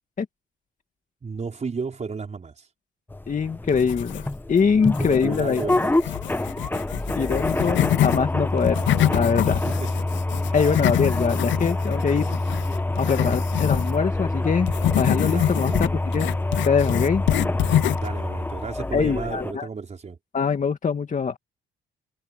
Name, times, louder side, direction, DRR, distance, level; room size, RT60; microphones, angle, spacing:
voice 1, 1.2-2.7 5.0-6.2 9.7-9.9 10.6-11.0 15.3-16.1 18.0-20.2, right 5 dB, 35° right, 5.0 m, -34 dB
sound 1, 3.1-19.5, left 2 dB, 10° left, 1.2 m, -26 dB
voice 2, 3.3-5.6 7.2-8.8 9.1-9.6 10.5-12.3 13.0-16.3 16.7-17.2 18.9-19.7 20.3-21.4, left 6 dB, 40° left, 2.2 m, -23 dB
sound 2, 3.7-4.5 4.9-8.2 8.6-13.9 14.7-18.1, left 12 dB, 70° left, 0.7 m, -26 dB
cardioid pair, 90°, 20 cm